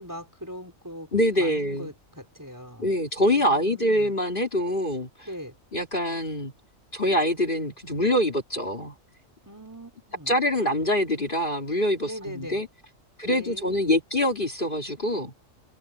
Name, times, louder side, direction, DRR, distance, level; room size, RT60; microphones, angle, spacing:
voice 1, 0.0-1.1 1.4-2.9 3.4-4.1 5.2-5.5 9.4-10.3 12.1-12.6 13.2-14.0, equal, 15° right, 4.6 m, -41 dB
voice 2, 1.1-1.9 2.8-5.3 5.7-6.5 6.9-8.9 10.3-12.7 13.2-15.3, left 1 dB, 40° left, 3.4 m, -25 dB
open air
omnidirectional pair, 1.4 m